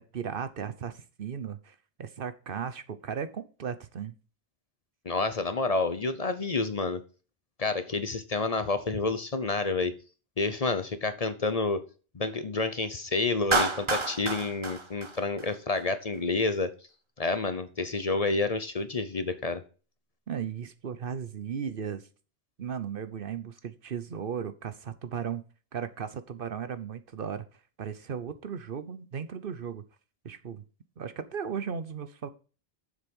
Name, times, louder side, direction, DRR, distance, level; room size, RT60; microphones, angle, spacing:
voice 1, 0.1-4.1 20.3-22.1 22.6-25.4 25.7-27.5 27.8-29.8 30.2-30.6 31.0-32.3, right 7 dB, 60° right, 12 dB, 1.0 m, -36 dB
voice 2, 5.0-7.0 7.6-9.9 10.4-11.8 12.1-16.7 17.2-19.6, left 3 dB, 40° left, 11 dB, 0.8 m, -29 dB
Clapping, 13.5-15.8, right 3 dB, 30° right, 0.9 m, -29 dB
7.4 x 6.9 x 5.4 m, 0.36 s
omnidirectional pair, 1.0 m